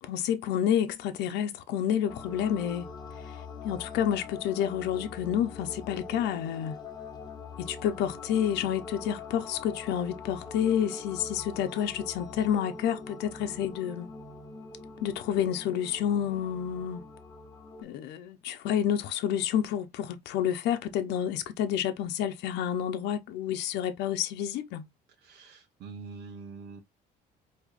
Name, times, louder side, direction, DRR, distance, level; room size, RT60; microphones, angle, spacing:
voice 1, 0.0-2.9 3.3-3.4 3.6-6.8 7.6-14.1 15.0-17.0 17.8-24.8, left 9 dB, 85° left, 0.7 m, -29 dB
sound 1, 2.1-17.8, left 4 dB, 25° left, 1.2 m, -43 dB
voice 2, 25.2-26.8, right 4 dB, 75° right, 0.9 m, -44 dB
4.8 x 2.9 x 2.5 m
cardioid pair, 110°, 17 cm